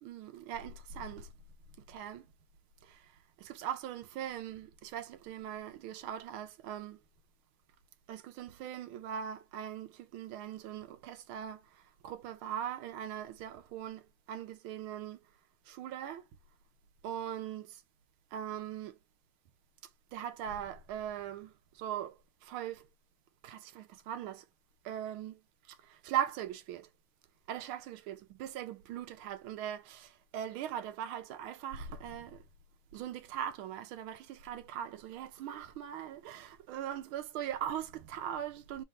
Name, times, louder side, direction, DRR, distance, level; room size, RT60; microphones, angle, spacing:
voice 1, 0.0-1.3 1.9-2.3 2.8-3.0 3.4-7.0 8.1-15.2 15.7-16.2 17.0-17.8 18.3-19.0 20.1-22.9 23.4-24.4 24.8-25.4 25.7-26.9 27.5-32.4 32.9-38.8, right 10 dB, 80° right, 1.4 m, -40 dB
3.9 x 2.4 x 4.1 m
omnidirectional pair, 2.3 m